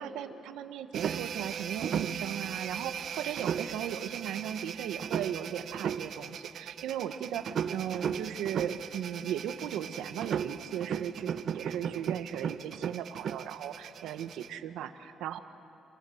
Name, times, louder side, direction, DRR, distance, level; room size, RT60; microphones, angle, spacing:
voice 1, 0.0-15.4, right 10 dB, 90° right, 9 dB, 1.2 m, -37 dB
sound 1, 0.9-14.5, right 8 dB, 65° right, 0.8 m, -36 dB
27.5 x 27.0 x 7.9 m, 2.8 s
cardioid pair, 90°, 0 cm